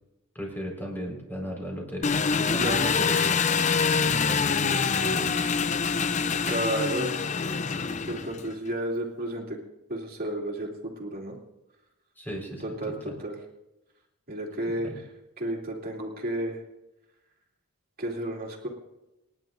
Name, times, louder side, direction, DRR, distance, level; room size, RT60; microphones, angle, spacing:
voice 1, 0.3-3.5 4.0-5.3 12.2-12.6 13.0-13.1 14.7-15.0, equal, 10° left, -1 dB, 4.5 m, -36 dB
Engine, 2.0-8.5, left 5 dB, 35° left, 0.5 m, -25 dB
voice 2, 2.6-2.9 6.4-7.2 7.8-9.6 9.9-11.3 12.6-12.9 13.2-13.3 14.3-14.9 15.4-16.6 18.0-18.7, right 1 dB, 40° right, -1 dB, 2.8 m, -32 dB
28.5 x 10.5 x 2.6 m, 0.95 s
head